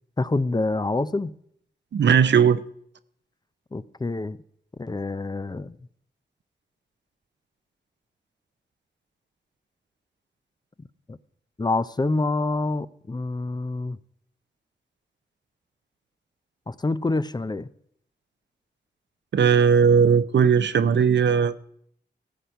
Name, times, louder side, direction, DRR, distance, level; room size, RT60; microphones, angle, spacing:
voice 1, 0.2-1.3 3.7-4.4 4.8-5.7 11.1-11.2 11.6-14.0 16.7-17.7, left 2 dB, 25° left, 0.5 m, -26 dB
voice 2, 1.9-2.6 19.3-21.5, right 7 dB, 75° right, 0.6 m, -18 dB
14.0 x 7.9 x 5.7 m
wide cardioid pair, 80°, 18 cm